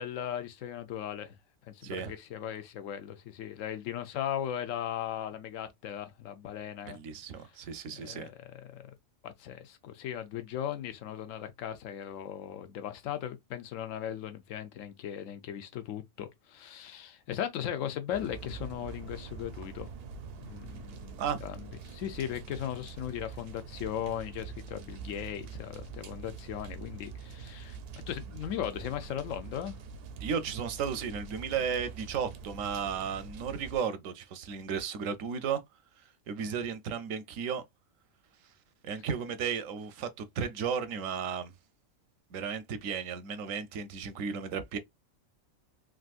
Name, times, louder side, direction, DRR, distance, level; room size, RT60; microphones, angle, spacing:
voice 1, 0.0-1.4 1.7-7.0 7.9-8.9 9.2-19.9 20.4-21.6 21.9-27.8 28.1-29.8, left 10 dB, 80° left, 1.0 m, -38 dB
voice 2, 1.8-2.1 6.8-8.3 21.2-21.4 30.2-35.6 36.3-37.6 38.8-41.5 42.3-44.8, right 6 dB, 85° right, 1.0 m, -34 dB
sound 1, 18.1-33.8, right 6 dB, 60° right, 0.6 m, -45 dB
3.5 x 2.5 x 2.3 m
omnidirectional pair, 1.3 m